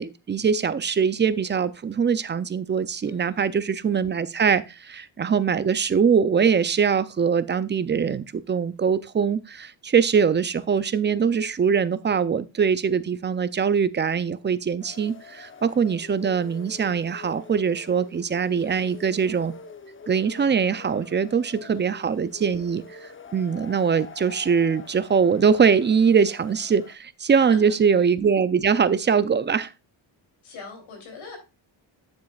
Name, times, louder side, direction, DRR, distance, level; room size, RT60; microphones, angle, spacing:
voice 1, 0.0-19.5 20.1-29.7, right 6 dB, 25° right, 0.4 m, -22 dB
voice 2, 3.1-3.4 18.6-18.9 21.6-21.9 27.3-27.8 30.4-31.4, left 4 dB, 85° left, 3.3 m, -42 dB
sound 1, 14.8-26.9, left 4 dB, 25° left, 0.8 m, -45 dB
8.7 x 7.3 x 2.4 m
cardioid pair, 100°, 47 cm